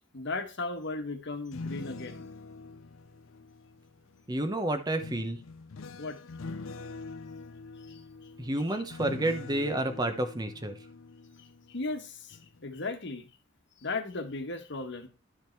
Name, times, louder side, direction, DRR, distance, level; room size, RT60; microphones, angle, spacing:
voice 1, 0.1-2.3 6.0-6.2 7.8-8.0 11.4-13.3 13.8-15.1, left 3 dB, 65° left, 1.4 m, -36 dB
sound 1, 1.3-4.2 5.0-11.9 12.3-12.6, left 3 dB, 85° left, 0.6 m, -44 dB
voice 2, 4.3-5.4 8.4-10.7, right 1 dB, 20° right, 1.0 m, -30 dB
11.0 x 5.1 x 4.6 m
head